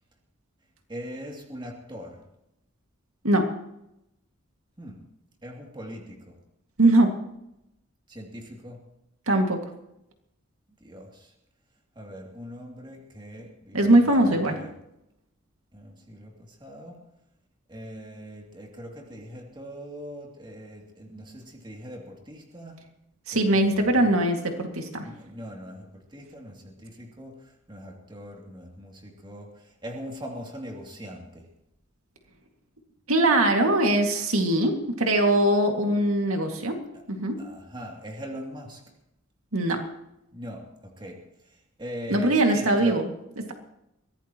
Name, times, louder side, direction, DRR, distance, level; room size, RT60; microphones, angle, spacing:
voice 1, 0.9-2.2 4.8-5.0 5.4-6.4 8.1-8.8 10.8-11.3 11.9-14.7 15.7-17.0 17.7-22.8 23.3-24.1 25.0-31.5 36.9-37.0 37.4-38.8 40.3-41.2 41.8-43.0, equal, 20° right, 0 dB, 2.8 m, -41 dB
voice 2, 6.8-7.2 9.3-9.6 13.7-14.6 23.3-25.1 33.1-37.5 39.5-39.8 42.1-43.1 43.4-43.5, right 1 dB, 85° right, 3 dB, 2.3 m, -22 dB
23.0 x 16.5 x 3.1 m, 0.84 s
head